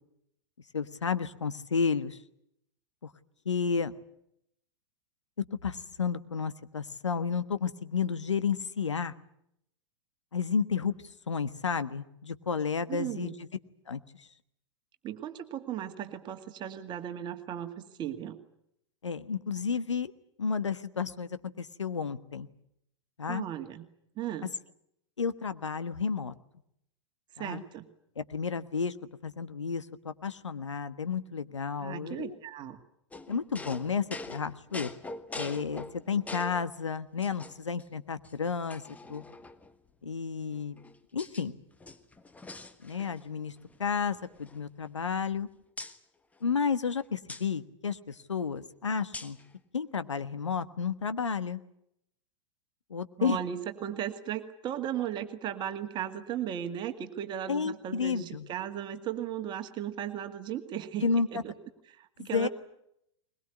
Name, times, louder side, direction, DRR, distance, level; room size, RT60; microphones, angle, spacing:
voice 1, 0.7-2.2 3.0-3.1 3.4-3.9 5.4-9.1 10.3-11.0 11.3-13.3 13.9-14.0 19.0-20.1 20.4-22.5 23.2-23.4 24.4-24.5 25.2-26.3 27.4-27.6 28.2-28.9 29.2-32.3 33.3-34.9 35.3-38.8 39.1-39.2 40.0-40.8 41.1-41.5 42.8-43.5 43.8-45.5 46.4-49.4 49.7-51.6 52.9-53.4 57.5-58.5 61.0-61.4 62.2-62.5, left 6 dB, 80° left, 12 dB, 1.3 m, -31 dB
voice 2, 12.9-13.3 15.0-18.4 23.3-23.9 24.2-24.5 27.4-27.8 31.8-32.8 53.2-61.5 61.9-62.5, right 10 dB, 30° right, 8 dB, 2.1 m, -36 dB
sound 1, 33.1-36.7 37.2-37.8 38.2-38.3 38.7-39.7 40.5-41.5 41.7-43.3 43.6-43.8 44.1-45.4 45.8-46.0 47.3-47.5 49.1-49.5, left 2 dB, 10° left, 1.4 m, -44 dB
21.5 x 21.5 x 9.5 m, 0.76 s
figure-of-eight pair, 100°, 15 cm